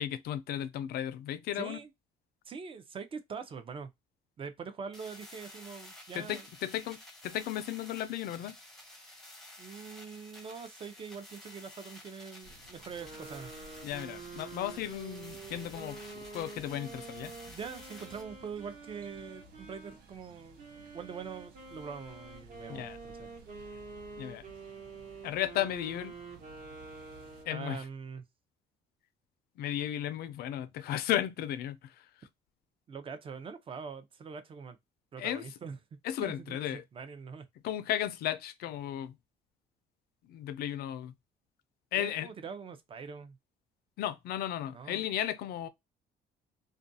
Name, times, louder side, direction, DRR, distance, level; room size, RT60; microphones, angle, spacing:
voice 1, 0.0-1.8 6.1-8.6 13.8-17.3 22.7-23.0 24.2-24.4 25.2-26.1 27.5-27.8 29.6-32.1 35.2-35.4 36.0-36.8 37.6-39.1 40.3-41.1 41.9-42.3 44.0-45.7, left 11 dB, 70° left, 0.4 m, -35 dB
voice 2, 1.5-1.9 2.5-3.9 4.4-6.5 9.6-13.5 17.5-20.6 20.9-23.3 27.5-28.3 32.9-34.8 35.1-35.8 36.2-37.5 41.9-43.4 44.7-45.1, right 6 dB, 30° right, 0.5 m, -43 dB
sound 1, 4.9-18.2, left 1 dB, ahead, 0.7 m, -52 dB
sound 2, 12.4-27.4, right 3 dB, 65° right, 0.8 m, -57 dB
sound 3, 13.0-20.0 20.6-27.7, right 4 dB, 50° right, 1.1 m, -48 dB
2.4 x 2.2 x 2.6 m
cardioid pair, 110°, 17 cm